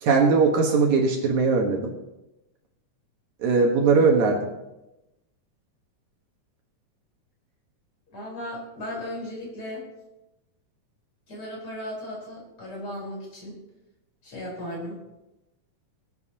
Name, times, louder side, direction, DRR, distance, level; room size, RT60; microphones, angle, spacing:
voice 1, 0.0-1.9 3.4-4.5, right 4 dB, 65° right, 1 dB, 2.7 m, -20 dB
voice 2, 8.1-9.8 11.3-13.6 14.2-15.0, left 1 dB, 40° left, -3 dB, 5.4 m, -36 dB
23.5 x 9.2 x 2.9 m, 0.94 s
omnidirectional pair, 3.8 m